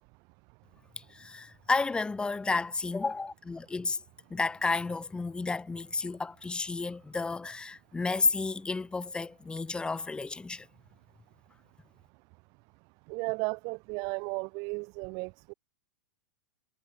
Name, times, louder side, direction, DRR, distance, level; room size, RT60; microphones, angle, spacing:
voice 1, 1.1-4.0 4.3-10.7, left 3 dB, 10° left, 1.7 m, -31 dB
voice 2, 13.1-15.5, right 31 dB, 50° right, 4.8 m, -34 dB
hypercardioid pair, 120°, 9 cm